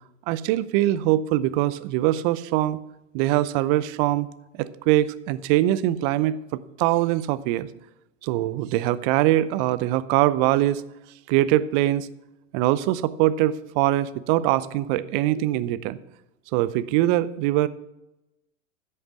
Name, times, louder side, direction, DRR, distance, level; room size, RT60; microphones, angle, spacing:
voice 1, 0.3-2.8 3.1-4.3 4.6-6.4 6.8-7.7 8.2-10.8 11.3-12.1 12.5-16.0 16.5-17.7, right 14 dB, 40° right, 16 dB, 0.6 m, -22 dB
10.5 x 6.6 x 6.3 m, 0.91 s
hypercardioid pair, 100°, 38 cm